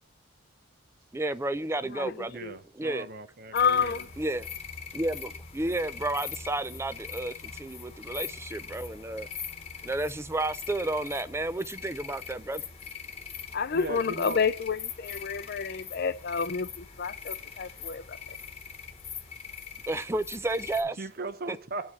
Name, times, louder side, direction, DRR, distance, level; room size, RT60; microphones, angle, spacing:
voice 1, 1.1-2.4 2.7-3.1 4.2-4.5 4.9-9.3 9.8-12.6 19.9-21.0 21.5-21.6, right 2 dB, 10° right, 0.4 m, -31 dB
voice 2, 2.3-4.0 13.7-14.5 21.0-21.9, right 3 dB, 45° right, 0.7 m, -38 dB
voice 3, 3.5-4.1 13.5-16.7 17.0-18.2, left 6 dB, 45° left, 0.5 m, -29 dB
sound 1, 3.5-20.8, left 7 dB, 30° left, 1.2 m, -42 dB
8.3 x 4.7 x 7.2 m
head